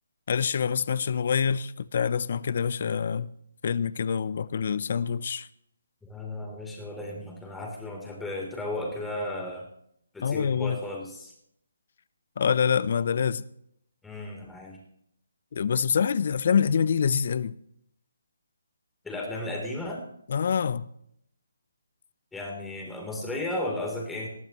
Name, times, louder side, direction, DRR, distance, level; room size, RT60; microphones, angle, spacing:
voice 1, 0.3-3.3 3.6-5.5 10.2-10.8 12.4-13.4 15.5-17.6 20.3-20.9, left 7 dB, 50° left, 0.6 m, -26 dB
voice 2, 6.1-9.7 10.1-11.3 14.0-14.8 19.0-20.0 22.3-24.3, left 1 dB, 5° left, 3.5 m, -34 dB
20.0 x 13.5 x 3.1 m
figure-of-eight pair, 145°, 0 cm